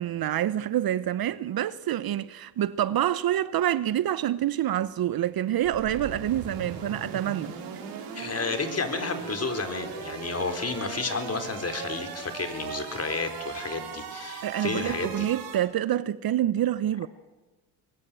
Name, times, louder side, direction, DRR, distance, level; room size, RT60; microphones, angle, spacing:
voice 1, 0.0-7.5 14.4-17.1, right 11 dB, 50° right, 0.9 m, -27 dB
sound 1, 5.6-15.6, right 6 dB, 85° right, 5.9 m, -39 dB
voice 2, 8.1-15.3, left 4 dB, 30° left, 4.6 m, -31 dB
23.5 x 22.5 x 7.7 m
hypercardioid pair, 60°, 47 cm